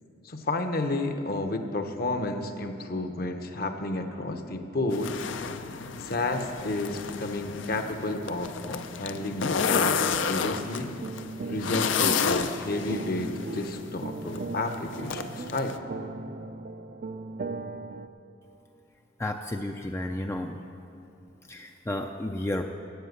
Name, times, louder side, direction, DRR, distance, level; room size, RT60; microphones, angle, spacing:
voice 1, 0.2-5.2 6.0-11.0 11.5-15.7, left 2 dB, 50° left, 6 dB, 0.9 m, -31 dB
sound 1, 4.9-15.8, left 6 dB, 70° left, 0.6 m, -31 dB
sound 2, 10.4-18.1, right 3 dB, 45° right, 0.5 m, -39 dB
voice 2, 19.2-20.6 21.5-22.6, left 1 dB, 15° left, 4 dB, 0.4 m, -32 dB
13.0 x 8.4 x 8.1 m, 2.7 s
head